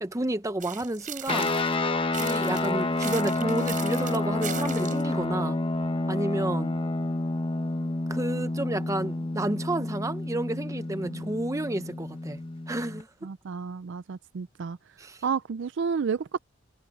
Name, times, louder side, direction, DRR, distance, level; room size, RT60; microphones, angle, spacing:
voice 1, 0.0-1.5 2.2-5.6 6.1-6.8 8.1-12.4 12.7-13.1 15.0-15.2, right 1 dB, 15° right, 0.7 m, -30 dB
sound 1, 0.6-1.8 2.1-5.1, right 9 dB, 40° right, 5.2 m, -39 dB
sound 2, 1.3-13.0, left 2 dB, 25° left, 1.0 m, -29 dB
voice 2, 13.2-14.8 15.2-16.4, right 6 dB, 65° right, 0.4 m, -31 dB
head